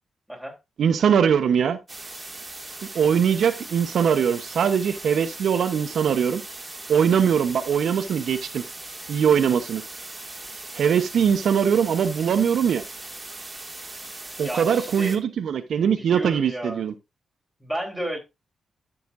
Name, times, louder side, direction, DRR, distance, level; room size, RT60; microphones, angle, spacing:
voice 1, 0.8-1.8 2.9-6.4 6.9-8.6 9.1-9.8 10.7-12.8 14.4-16.9, right 7 dB, 75° right, 0.9 m, -21 dB
sound 1, 1.9-15.2, right 2 dB, 20° right, 2.4 m, -39 dB
voice 2, 14.4-15.2 16.0-16.8 17.6-18.2, equal, ahead, 4.1 m, -33 dB
12.5 x 6.7 x 2.6 m
cardioid pair, 90°, 0 cm